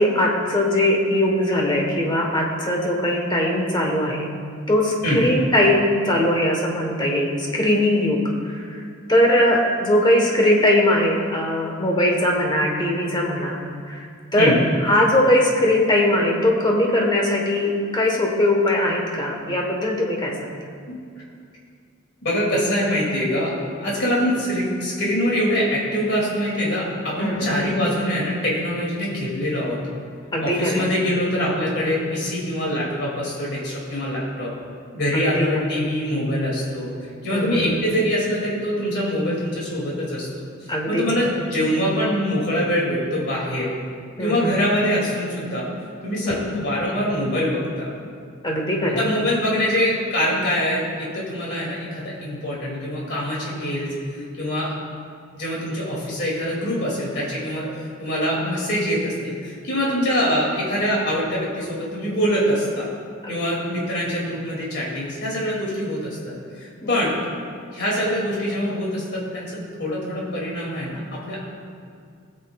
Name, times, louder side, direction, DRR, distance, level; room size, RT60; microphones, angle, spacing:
voice 1, 0.0-4.3 4.7-8.6 9.1-14.0 14.3-14.5 14.8-20.6 27.2-27.8 30.3-30.9 35.1-35.5 37.3-37.8 40.7-41.0 44.2-44.5 46.2-46.4 48.4-49.1 54.2-54.3 57.6-57.8 63.2-63.5 66.8-66.9, left 1 dB, 20° left, 0 dB, 1.2 m, -20 dB
voice 2, 22.2-23.6 23.8-29.8 30.4-34.5 34.9-36.9 37.2-40.4 40.9-43.7 44.2-45.6 46.0-47.9 49.0-53.9 54.4-54.7 55.3-57.7 58.0-62.9 63.3-67.1 67.7-69.5 69.8-71.5, equal, 55° left, -5 dB, 2.5 m, -24 dB
19.5 x 7.8 x 2.4 m, 2.3 s
head